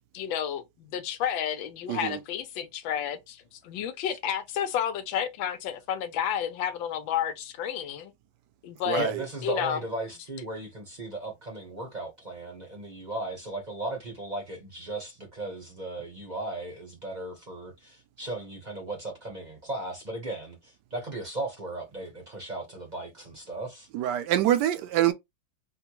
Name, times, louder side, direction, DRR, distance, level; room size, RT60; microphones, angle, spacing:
voice 1, 0.0-8.1 8.6-9.1 9.4-9.8, left 9 dB, 90° left, 1.4 m, -31 dB
voice 2, 9.0-23.9, right 2 dB, 35° right, 0.7 m, -36 dB
voice 3, 23.9-25.1, right 12 dB, 75° right, 1.1 m, -25 dB
4.2 x 2.2 x 2.9 m
omnidirectional pair, 2.1 m